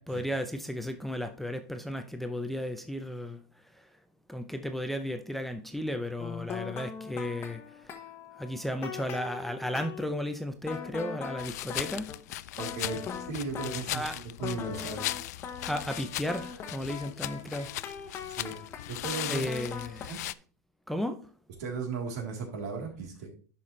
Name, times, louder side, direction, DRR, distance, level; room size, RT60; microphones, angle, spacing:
voice 1, 0.1-3.4 3.7-3.9 4.3-8.0 8.4-12.1 13.9-14.2 15.7-17.7 19.3-20.2 20.9-21.3, equal, ahead, 0.6 m, -34 dB
sound 1, 6.2-10.1 10.6-14.1 14.4-20.1, left 7 dB, 30° left, 1.1 m, -40 dB
sound 2, 11.4-20.3, left 15 dB, 75° left, 0.4 m, -38 dB
voice 2, 12.6-13.0 13.3-15.1 18.3-18.6 18.9-19.5 20.1-20.2 21.6-23.3, right 4 dB, 75° right, 3.4 m, -36 dB
10.5 x 5.8 x 3.2 m
supercardioid pair, 140°, 9 cm